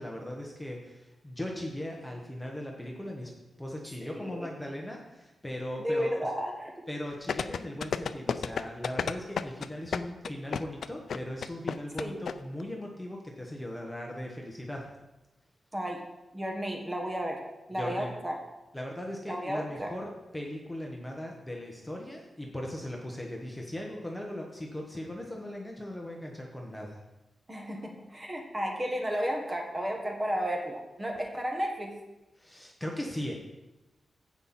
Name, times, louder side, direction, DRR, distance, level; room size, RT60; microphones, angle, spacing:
voice 1, 0.0-3.3 3.6-6.1 6.9-14.9 17.7-18.1 18.7-27.0 32.4-33.4, left 1 dB, 5° left, 0 dB, 1.2 m, -38 dB
voice 2, 5.8-6.7 12.0-12.2 15.7-16.0 16.3-17.4 17.7-18.4 19.3-19.9 27.5-31.9, equal, 15° right, 1 dB, 1.6 m, -33 dB
sound 1, 7.3-12.3 12.6-12.7, left 6 dB, 70° left, 0.4 m, -31 dB
16.0 x 5.6 x 4.3 m, 1.0 s
wide cardioid pair, 135°, 0 cm